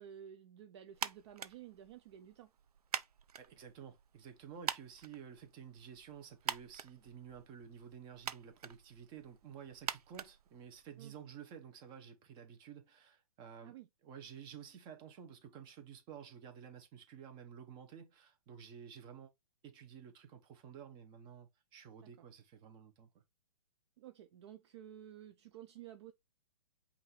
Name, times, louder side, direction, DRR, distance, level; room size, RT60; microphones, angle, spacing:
voice 1, 0.0-2.5 11.0-11.1 13.6-13.9 22.0-22.1 24.0-26.1, right 10 dB, 50° right, 0.5 m, -53 dB
sound 1, 0.9-11.1, right 8 dB, 90° right, 0.6 m, -46 dB
voice 2, 3.4-13.8 14.0-19.3 19.6-23.1, right 8 dB, 25° right, 1.0 m, -52 dB
5.5 x 2.7 x 3.2 m
hypercardioid pair, 150°, 19 cm